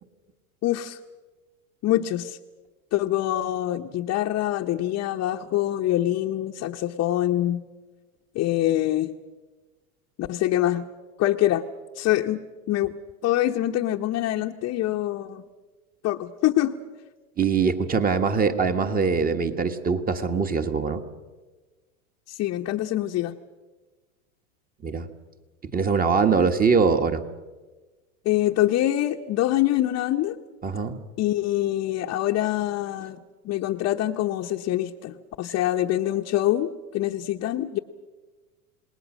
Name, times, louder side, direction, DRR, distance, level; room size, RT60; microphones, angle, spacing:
voice 1, 0.6-1.0 1.8-2.4 2.9-7.6 8.3-9.1 10.2-10.9 11.2-11.6 11.9-12.4 12.7-12.9 13.2-15.4 16.0-16.7 22.3-23.3 28.2-30.4 31.2-37.8, left 14 dB, 35° left, 0 dB, 1.0 m, -25 dB
voice 2, 17.4-21.0 24.8-25.1 25.7-27.2 30.6-31.0, right 5 dB, 20° right, 8 dB, 1.6 m, -22 dB
28.0 x 20.0 x 6.4 m, 1.3 s
hypercardioid pair, 110°, 43 cm